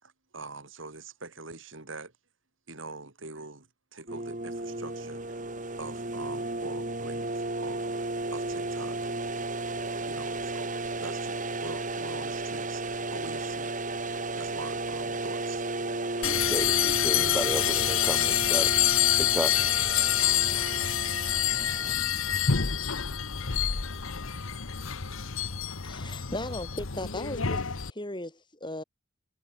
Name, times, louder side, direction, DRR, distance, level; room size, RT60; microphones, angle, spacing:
voice 1, 0.0-2.1 2.7-5.4 5.8-9.1 10.1-13.7 14.1-15.9, right 3 dB, 65° right, 2.9 m, -44 dB
sound 1, 4.1-21.9, right 2 dB, 40° right, 3.7 m, -34 dB
sound 2, 16.2-27.9, left 10 dB, 75° left, 1.3 m, -27 dB
voice 2, 16.2-18.7 19.2-19.5, equal, 5° right, 1.7 m, -33 dB
voice 3, 25.8-28.8, left 1 dB, 20° left, 4.8 m, -37 dB
head